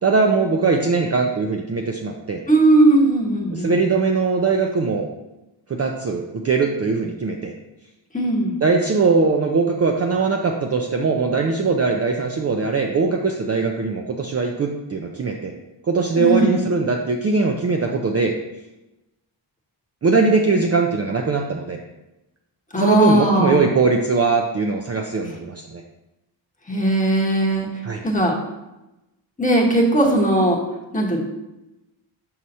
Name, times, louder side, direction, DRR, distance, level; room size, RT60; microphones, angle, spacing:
voice 1, 0.0-2.4 3.5-5.1 5.7-7.5 8.6-15.5 15.9-18.3 20.0-21.8 22.8-25.8 27.8-28.0, right 4 dB, 35° right, 2 dB, 0.4 m, -20 dB
voice 2, 2.5-3.7 8.1-8.6 16.2-16.7 22.7-23.7 26.7-27.7 28.0-28.3 29.4-30.6 30.9-31.2, right 1 dB, 15° left, -1 dB, 1.1 m, -18 dB
6.2 x 2.8 x 5.4 m, 0.98 s
wide cardioid pair, 125°, 47 cm